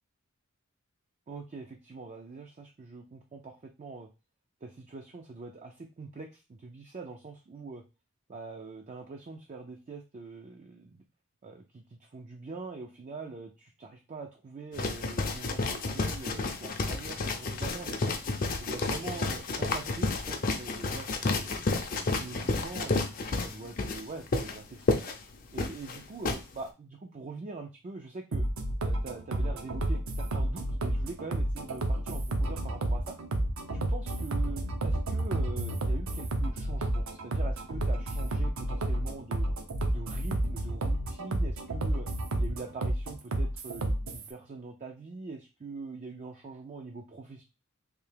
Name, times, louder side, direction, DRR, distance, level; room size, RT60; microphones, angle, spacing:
voice 1, 1.3-4.1 4.6-7.8 8.3-11.0 11.4-18.2 18.6-21.7 22.0-25.1 25.5-28.4 28.8-33.2 33.7-39.5 39.9-42.1 42.4-47.4, right 3 dB, 35° right, 3 dB, 0.4 m, -43 dB
sound 1, 14.7-26.4, left 3 dB, 40° left, 0.5 m, -31 dB
sound 2, 28.3-44.3, right 1 dB, 75° right, 0.7 m, -30 dB
3.3 x 2.7 x 3.3 m, 0.29 s
head